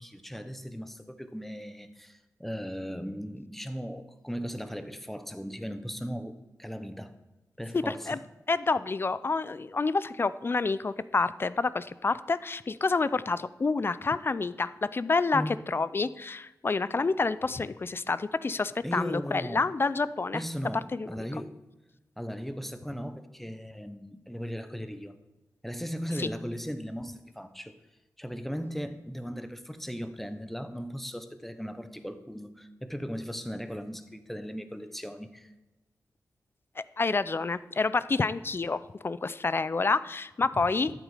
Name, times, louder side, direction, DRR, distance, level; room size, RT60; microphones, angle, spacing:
voice 1, 0.0-7.1 7.6-8.2 15.3-15.7 18.8-19.7 20.3-21.6 22.2-25.2 25.6-27.8 28.2-35.5, equal, 5° left, 10 dB, 0.9 m, -37 dB
voice 2, 7.7-8.2 8.5-20.4 20.9-21.1 26.2-26.3 36.8-40.9, left 4 dB, 35° left, 16 dB, 0.4 m, -28 dB
12.5 x 8.1 x 5.0 m, 1.0 s
wide cardioid pair, 85°, 6 cm